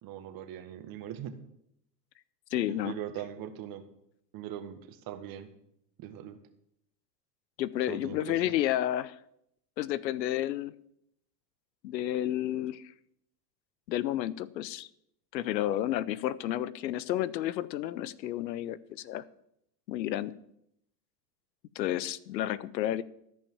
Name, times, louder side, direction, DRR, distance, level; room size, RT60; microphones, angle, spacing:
voice 1, 0.0-1.3 2.7-3.9 4.3-5.5 6.0-6.4 7.9-8.5, right 10 dB, 45° right, 8 dB, 1.6 m, -41 dB
voice 2, 2.5-2.9 7.6-9.2 9.8-10.7 11.8-12.9 13.9-14.9 15.3-19.2 19.9-20.3 21.8-23.0, left 13 dB, 85° left, 19 dB, 0.7 m, -31 dB
13.5 x 5.6 x 7.2 m, 0.75 s
hypercardioid pair, 105°, 50 cm